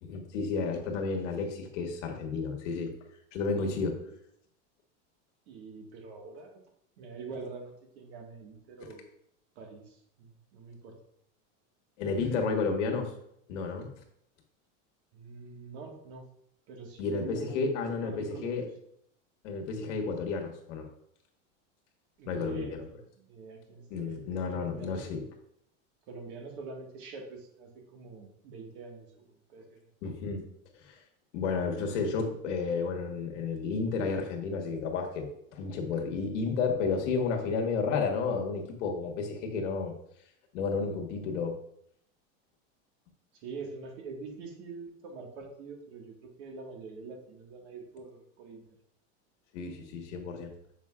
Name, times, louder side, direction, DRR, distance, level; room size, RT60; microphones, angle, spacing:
voice 1, 0.0-2.9 3.3-4.0 12.0-13.1 13.5-13.9 17.0-18.6 19.4-20.9 22.3-22.8 23.9-25.2 30.0-30.4 30.8-30.9 31.3-39.9 40.5-41.5 49.5-50.5, left 4 dB, 75° left, 2 dB, 1.5 m, -31 dB
voice 2, 3.6-4.2 5.5-6.6 7.0-9.0 9.5-11.0 15.1-16.2 16.7-17.7 18.0-18.7 22.2-25.0 26.1-29.9 43.3-48.6, right 4 dB, 65° right, 2 dB, 1.7 m, -45 dB
7.3 x 5.2 x 2.4 m, 0.71 s
supercardioid pair, 155°, 36 cm